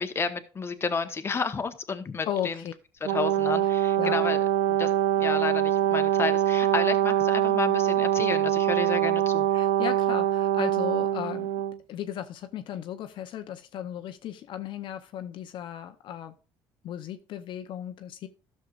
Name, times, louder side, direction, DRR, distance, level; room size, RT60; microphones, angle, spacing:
voice 1, 0.0-2.6 3.0-4.9 5.2-9.5, left 5 dB, 25° left, 7 dB, 1.0 m, -31 dB
voice 2, 2.2-2.7 4.0-4.3 9.5-11.5 11.9-16.3 16.8-18.3, left 10 dB, 60° left, 8 dB, 0.7 m, -35 dB
Brass instrument, 3.0-11.8, right 11 dB, 85° right, 0.5 m, -24 dB
12.5 x 6.6 x 2.4 m, 0.33 s
cardioid pair, 100°, 9 cm